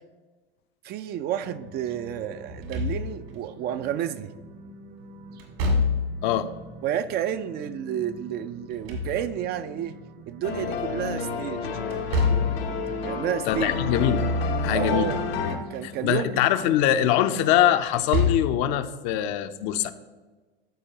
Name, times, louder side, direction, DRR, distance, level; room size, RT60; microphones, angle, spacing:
voice 1, 0.8-4.3 5.3-5.4 6.8-10.0 10.2-11.7 13.0-13.7 14.7-15.2 15.5-16.3, right 10 dB, 35° right, 12 dB, 0.4 m, -30 dB
sound 1, 1.4-17.8, right 1 dB, 55° right, 1.0 m, -46 dB
Slam / Thump thud, 2.5-3.4 5.4-6.3 8.5-9.6 11.9-12.7 14.8-15.4 15.7-15.8 17.9-18.7, left 3 dB, 70° right, 2.1 m, -26 dB
sound 2, 10.4-15.6, left 4 dB, 80° left, 1.1 m, -29 dB
voice 2, 13.5-14.2 14.6-15.1 15.8-19.9, left 11 dB, 55° left, 10 dB, 0.6 m, -23 dB
13.0 x 4.6 x 2.9 m, 1.3 s
hypercardioid pair, 95°, 30 cm